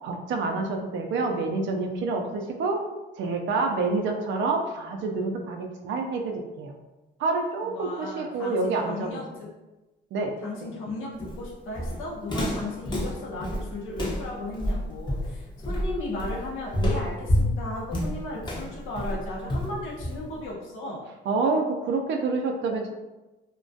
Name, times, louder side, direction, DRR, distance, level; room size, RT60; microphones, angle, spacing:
voice 1, 0.0-2.8 3.2-6.7 7.2-9.2 10.1-10.4 10.6-10.7 21.3-22.9, right 3 dB, 70° right, 3 dB, 0.4 m, -27 dB
voice 2, 7.6-9.5 10.4-21.0, left 2 dB, 90° left, -4 dB, 0.6 m, -35 dB
Walk footsteps, 11.2-20.5, equal, 20° left, 0.6 m, -29 dB
2.3 x 2.2 x 2.5 m, 1.1 s
cardioid pair, 90°, 20 cm